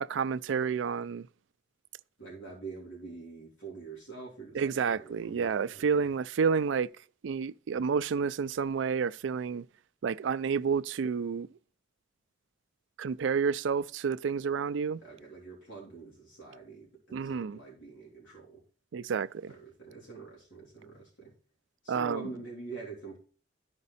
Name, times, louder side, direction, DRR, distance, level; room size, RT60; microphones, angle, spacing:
voice 1, 0.0-1.3 4.5-6.9 7.2-9.6 10.0-11.5 13.0-15.0 17.1-17.6 18.9-19.5 21.9-22.3, right 6 dB, 80° right, 0.4 m, -30 dB
voice 2, 2.2-6.1 15.0-18.6 19.5-21.3 21.8-23.2, right 4 dB, 80° left, 3.5 m, -45 dB
13.0 x 5.2 x 4.1 m
head